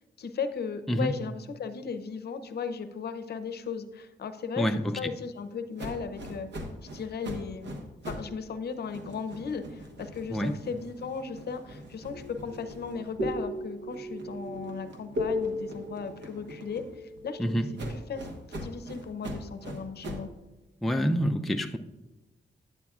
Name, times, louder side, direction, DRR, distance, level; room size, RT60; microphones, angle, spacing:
voice 1, 0.2-4.7 5.0-6.5 6.8-17.4 17.9-18.3 18.6-20.3, left 5 dB, 60° left, 0.6 m, -36 dB
voice 2, 4.6-5.0 10.3-10.5 17.4-17.7 20.8-21.8, equal, ahead, 0.3 m, -27 dB
sound 1, 5.8-8.4 8.7-13.4 13.9-17.2 17.8-20.4, right 1 dB, 70° right, 1.1 m, -43 dB
sound 2, 12.1-17.7, left 1 dB, 85° right, 1.0 m, -36 dB
9.3 x 8.5 x 2.4 m
wide cardioid pair, 120°, 19 cm